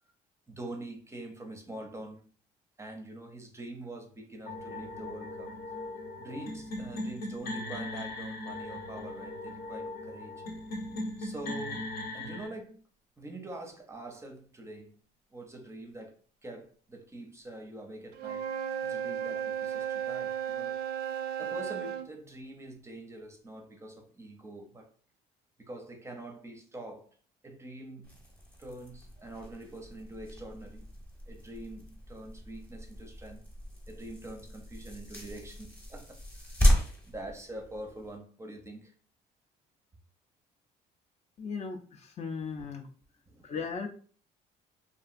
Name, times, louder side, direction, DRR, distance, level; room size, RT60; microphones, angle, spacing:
voice 1, 0.5-2.3 2.8-5.6 6.2-10.4 11.2-12.8 13.2-15.0 15.3-16.2 16.4-20.8 21.4-24.9 25.6-27.1 27.4-28.2 28.6-30.9 31.3-33.5 33.9-36.6 37.1-38.9 43.3-43.5, right 1 dB, 15° right, 0.5 m, -45 dB
sound 1, 4.5-12.5, left 1 dB, 70° left, 0.8 m, -39 dB
Wind instrument woodwind instrument, 18.1-22.1, right 9 dB, 70° right, 0.4 m, -34 dB
sound 2, 28.0-38.2, equal, 10° left, 0.8 m, -34 dB
voice 2, 41.4-42.9 43.4-43.9, left 5 dB, 40° left, 0.4 m, -37 dB
2.8 x 2.4 x 2.5 m
cardioid pair, 110°, 17 cm